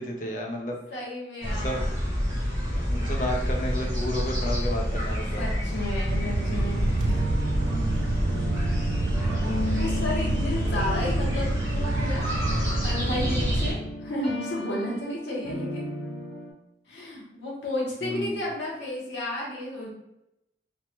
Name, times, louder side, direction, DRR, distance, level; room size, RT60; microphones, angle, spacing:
voice 1, 0.0-0.8 1.5-1.8 2.9-5.6 7.6-8.3 18.0-18.4, equal, 45° left, 0 dB, 0.5 m, -32 dB
voice 2, 0.9-1.8 5.4-7.3 9.1-12.3 12.8-15.9 16.9-19.9, left 1 dB, 90° left, -5 dB, 0.8 m, -33 dB
sound 1, 1.4-13.7, equal, 20° right, 0.9 m, -28 dB
sound 2, 6.1-13.7, right 2 dB, 80° right, 0.3 m, -29 dB
sound 3, 7.1-16.5, left 1 dB, 70° left, 1.3 m, -34 dB
3.1 x 2.1 x 2.8 m, 0.85 s
head